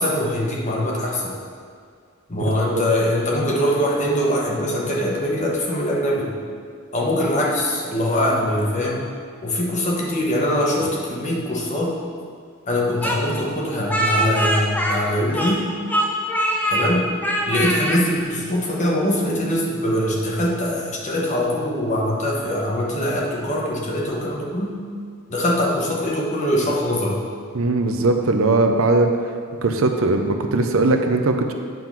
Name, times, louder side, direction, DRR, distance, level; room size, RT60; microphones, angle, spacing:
voice 1, 0.0-1.4 2.3-6.3 6.9-9.1 9.4-12.0 12.7-15.6 16.7-17.1 17.5-24.7 25.3-27.2, left 1 dB, 35° left, -2 dB, 1.2 m, -22 dB
Speech, 13.0-15.6 15.9-16.9 17.2-18.0, right 1 dB, 5° left, 0.6 m, -22 dB
voice 2, 27.5-29.1 29.6-31.5, right 2 dB, 65° right, 5 dB, 0.6 m, -19 dB
9.1 x 3.8 x 6.0 m, 2.2 s
head